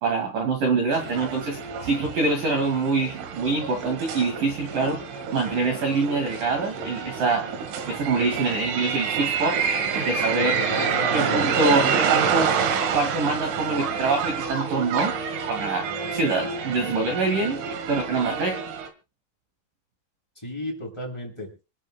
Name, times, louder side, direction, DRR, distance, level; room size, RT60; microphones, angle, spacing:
voice 1, 0.0-5.0 5.3-7.5 7.9-9.6 10.0-10.6 11.1-12.6 12.9-15.2 15.5-18.7, right 3 dB, 50° right, 3 dB, 3.0 m, -25 dB
sound 1, 0.9-18.9, right 6 dB, 70° right, 4.1 m, -28 dB
voice 2, 10.4-11.4 20.4-21.5, equal, 5° left, 0 dB, 7.1 m, -32 dB
28.0 x 12.0 x 2.3 m, 0.32 s
omnidirectional pair, 5.9 m